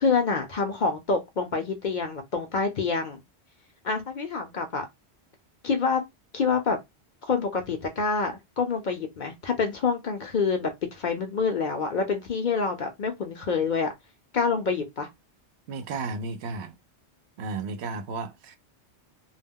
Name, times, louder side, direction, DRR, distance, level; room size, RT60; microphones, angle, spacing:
voice 1, 0.0-3.2 3.8-4.9 5.6-6.0 6.3-6.8 7.2-13.9 14.3-15.1, left 5 dB, 55° left, 0.6 m, -27 dB
voice 2, 15.7-16.7 17.4-18.6, right 3 dB, 80° right, 0.8 m, -33 dB
2.3 x 2.1 x 3.5 m
omnidirectional pair, 1.1 m